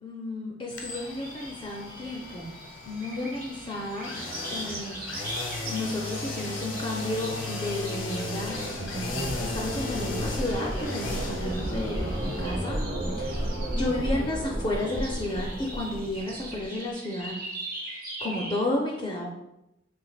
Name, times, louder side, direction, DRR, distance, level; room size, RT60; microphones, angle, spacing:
voice 1, 0.0-2.5 2.8-4.1 4.5-12.8 13.1-17.3 17.8-19.3, left 1 dB, 25° left, -2 dB, 0.4 m, -32 dB
sound 1, 0.7-16.5 16.8-16.9, left 3 dB, 90° left, 0.6 m, -37 dB
sound 2, 0.9-14.1 14.7-18.6, right 2 dB, 50° right, 0.8 m, -42 dB
sound 3, 7.6-16.6, right 1 dB, 85° right, 0.9 m, -33 dB
3.2 x 3.1 x 2.3 m, 0.87 s
head